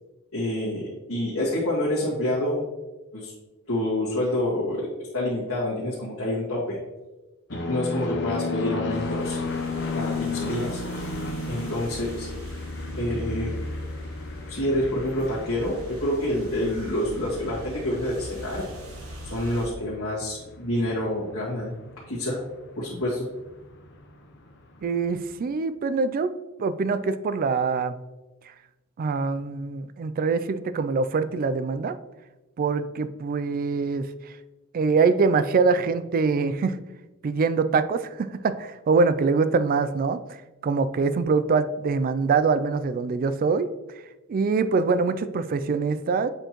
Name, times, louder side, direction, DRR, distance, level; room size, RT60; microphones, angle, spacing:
voice 1, 0.3-2.6 3.1-3.3 3.7-4.9 5.1-6.8 7.5-9.4 9.9-10.8 11.5-12.3 13.0-13.6 14.5-18.7 19.2-21.7 22.1-22.4 22.8-23.3, left 1 dB, 90° left, -9 dB, 1.8 m, -27 dB
sound 1, 7.5-24.5 24.8-25.3, left 3 dB, 55° left, 0.7 m, -34 dB
sound 2, 8.9-19.7, right 1 dB, 70° right, 1.2 m, -42 dB
voice 2, 24.8-26.3 26.6-28.0 29.0-32.0 32.6-34.1 34.7-36.8 37.2-40.4 40.6-43.7 44.3-46.3, right 4 dB, 40° right, 13 dB, 0.3 m, -24 dB
7.8 x 4.4 x 3.0 m, 1.1 s
head